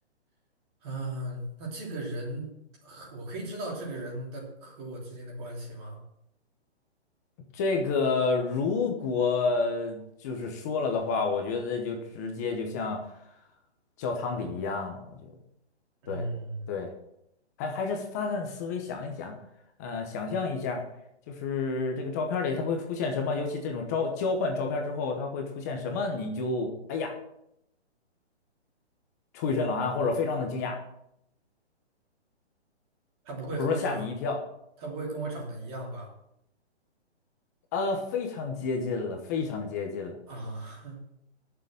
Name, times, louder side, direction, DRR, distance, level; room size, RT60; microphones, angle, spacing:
voice 1, 0.8-2.5 2.8-6.0 16.0-16.7 33.2-34.1 34.8-36.1 40.3-41.1, right 2 dB, 25° right, -1 dB, 3.0 m, -37 dB
voice 2, 7.5-13.0 14.0-15.3 16.1-16.3 16.7-16.9 17.6-19.4 19.8-20.8 21.3-27.1 29.3-30.8 33.5-34.4 37.7-40.2, left 4 dB, 15° left, 3 dB, 0.9 m, -30 dB
10.5 x 7.0 x 7.5 m, 0.78 s
hypercardioid pair, 170°, 34 cm